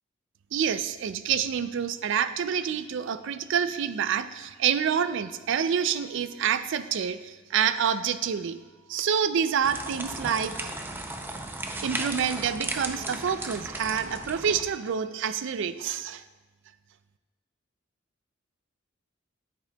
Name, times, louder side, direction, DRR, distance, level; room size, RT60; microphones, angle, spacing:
voice 1, 0.5-8.6 8.9-10.5 11.8-16.2, right 7 dB, 65° right, 12 dB, 0.4 m, -27 dB
sound 1, 9.6-14.6, right 2 dB, 10° right, 0.5 m, -35 dB
9.5 x 8.7 x 2.3 m, 1.3 s
head